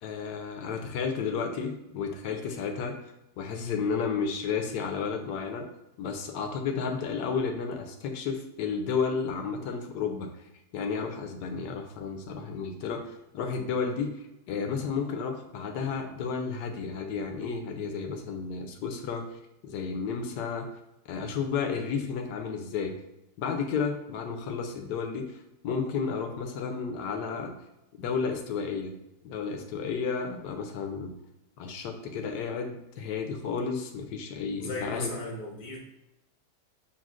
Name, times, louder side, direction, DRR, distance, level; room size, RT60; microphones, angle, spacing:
voice 1, 0.0-2.9 3.4-5.7 6.0-10.3 10.7-13.0 13.3-19.3 19.6-20.6 21.1-22.9 23.4-25.4 25.6-27.5 28.0-28.9 29.2-31.1 31.6-35.1, left 5 dB, 80° left, 4 dB, 1.2 m, -32 dB
voice 2, 34.6-35.8, left 3 dB, 40° left, -2 dB, 0.6 m, -35 dB
7.1 x 2.4 x 2.4 m, 0.90 s
omnidirectional pair, 1.9 m